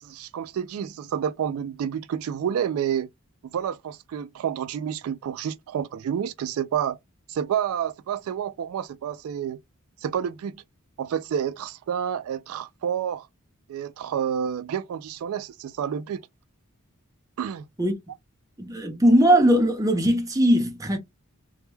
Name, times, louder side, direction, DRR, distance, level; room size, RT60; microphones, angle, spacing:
voice 1, 0.0-3.1 3.5-7.0 7.3-9.6 10.0-10.6 11.0-13.3 13.7-16.2 17.4-17.7, right 8 dB, 80° right, 0.3 m, -29 dB
voice 2, 18.6-21.0, equal, 15° right, 0.5 m, -19 dB
2.2 x 2.1 x 3.0 m
head